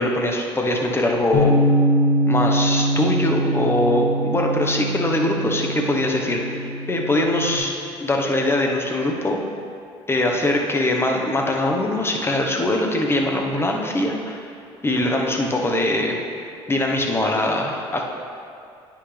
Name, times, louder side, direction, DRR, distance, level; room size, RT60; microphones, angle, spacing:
voice 1, 0.0-1.5 2.3-7.7 8.0-9.4 10.1-14.5 14.8-16.1 16.7-18.1, left 1 dB, 20° left, 1 dB, 1.2 m, -22 dB
Bass guitar, 1.3-7.6, equal, 90° left, 1.8 m, -22 dB
9.6 x 6.0 x 3.4 m, 2.6 s
supercardioid pair, 70°, 13 cm